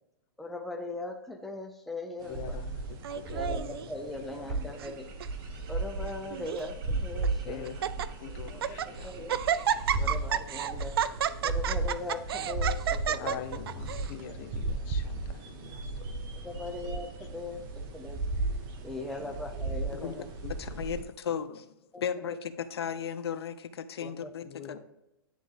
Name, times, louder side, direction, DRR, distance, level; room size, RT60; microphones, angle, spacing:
voice 1, 0.4-2.6 3.2-5.1 5.7-7.7 8.3-8.6 9.0-9.4 10.0-11.0 11.4-13.4 14.3-14.4 16.4-18.2 18.8-20.3 21.9-22.0 24.0-24.3, left 2 dB, ahead, 3 dB, 0.4 m, -39 dB
voice 2, 2.2-3.9 4.5-4.6 7.4-9.4 9.9-10.6 13.1-16.1 16.4-16.6 19.2-19.3 20.4-20.8 21.5-21.6 24.4-24.8, left 9 dB, 35° left, 7 dB, 0.8 m, -45 dB
sound 1, 2.2-21.0, right 2 dB, 30° right, 1.0 m, -35 dB
Laughter, 3.0-3.9 4.6-4.9 5.2-5.3 6.1-6.7 7.2-7.3 7.7-8.1 8.5-8.9 9.3-14.1, right 9 dB, 70° right, 0.4 m, -31 dB
voice 3, 20.6-21.6 22.0-24.6, left 8 dB, 80° left, 12 dB, 0.6 m, -35 dB
10.0 x 3.8 x 3.4 m, 0.90 s
hypercardioid pair, 145°, 13 cm